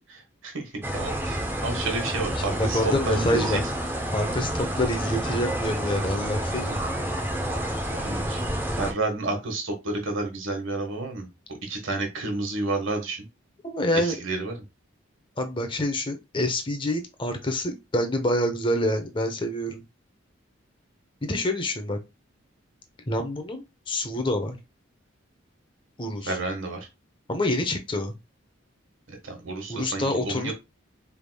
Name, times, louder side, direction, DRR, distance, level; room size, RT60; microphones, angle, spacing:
voice 1, 0.1-3.6 7.9-11.3 11.6-13.3 13.9-14.6 26.2-26.8 29.1-30.5, right 2 dB, 75° right, 1.3 m, -30 dB
sound 1, 0.8-8.9, right 1 dB, 10° right, 0.6 m, -29 dB
voice 2, 2.4-3.6 4.1-6.8 13.6-14.1 15.4-19.8 21.2-22.0 23.1-24.6 26.0-26.4 27.3-28.1 29.7-30.5, left 1 dB, 25° left, 0.7 m, -27 dB
4.8 x 3.5 x 2.2 m
head